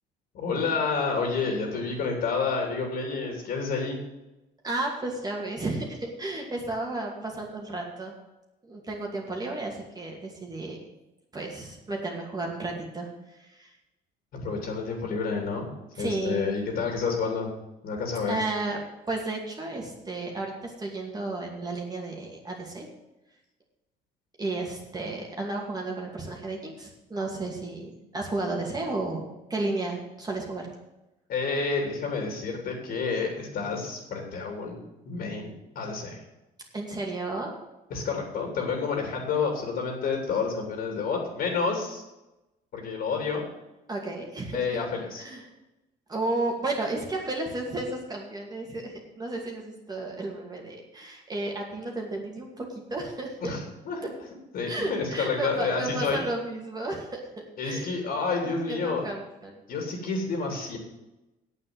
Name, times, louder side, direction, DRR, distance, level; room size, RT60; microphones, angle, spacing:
voice 1, 0.3-4.0 14.4-15.7 16.0-17.5 17.8-18.3 31.3-36.2 37.9-42.0 42.7-43.4 44.5-45.2 53.4-53.6 53.8-54.1 54.5-56.2 57.6-59.0 59.7-60.8, left 4 dB, 60° left, 1 dB, 3.1 m, -29 dB
voice 2, 4.6-8.1 8.6-10.8 11.3-13.7 16.0-16.6 18.3-18.8 19.1-22.9 24.4-30.7 36.7-37.5 43.9-44.8 45.2-45.4 46.1-53.5 54.7-57.2 57.6-57.8 58.4-59.6, right 2 dB, 25° right, 0 dB, 2.4 m, -33 dB
8.5 x 7.9 x 8.8 m, 0.97 s
cardioid pair, 110°, 17 cm